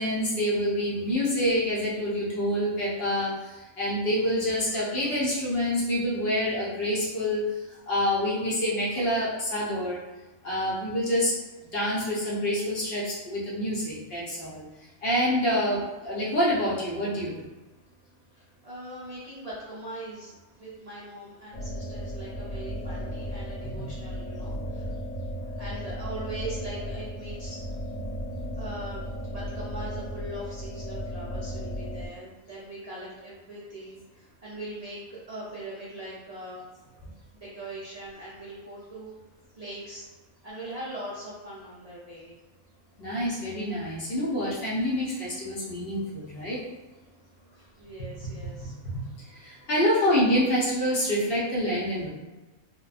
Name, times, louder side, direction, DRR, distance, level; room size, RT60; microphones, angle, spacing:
voice 1, 0.0-10.0 10.4-11.4 11.7-14.6 15.0-17.3 23.8-23.9 43.0-46.6 49.3-52.1, equal, 55° left, -6 dB, 0.8 m, -27 dB
voice 2, 18.3-25.0 25.4-27.8 28.5-36.6 37.3-39.1 39.6-40.1 40.4-42.4 47.5-48.7, right 1 dB, 55° right, -8 dB, 0.4 m, -41 dB
sound 1, 21.5-32.1, equal, 80° left, 1.3 m, -35 dB
2.9 x 2.2 x 2.3 m, 1.1 s
omnidirectional pair, 1.4 m